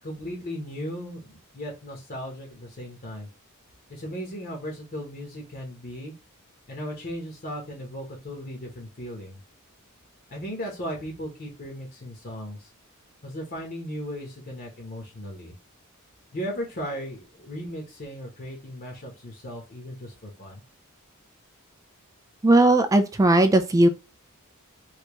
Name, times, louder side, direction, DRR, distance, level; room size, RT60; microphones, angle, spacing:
voice 1, 0.0-3.3 3.9-6.1 6.7-9.4 10.3-12.7 13.2-15.5 16.3-20.6, equal, 40° left, 1.0 m, -36 dB
voice 2, 22.4-23.9, right 2 dB, 15° right, 0.3 m, -18 dB
3.3 x 2.9 x 3.0 m
head